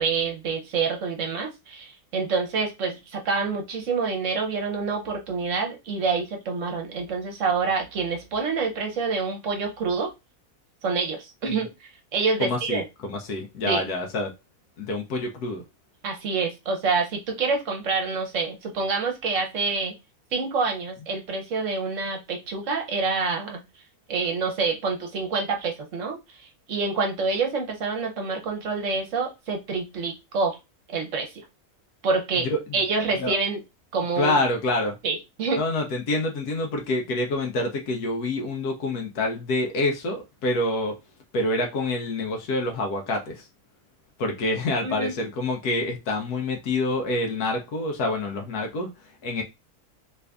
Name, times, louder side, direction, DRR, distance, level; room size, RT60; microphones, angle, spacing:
voice 1, 0.0-10.1 10.8-12.8 13.7-13.8 16.0-19.9 20.3-23.6 24.1-30.6 30.9-31.4 32.0-32.5 32.7-33.6 33.9-34.4 35.0-35.6 44.8-45.1, right 4 dB, 60° right, 1.1 m, -27 dB
voice 2, 12.4-12.8 13.3-14.3 14.8-15.6 32.5-32.6 33.2-33.4 34.2-35.0 35.6-40.9 41.3-43.5 44.2-48.9 49.2-49.4, left 2 dB, 85° left, 1.3 m, -27 dB
3.3 x 2.6 x 3.4 m
omnidirectional pair, 1.6 m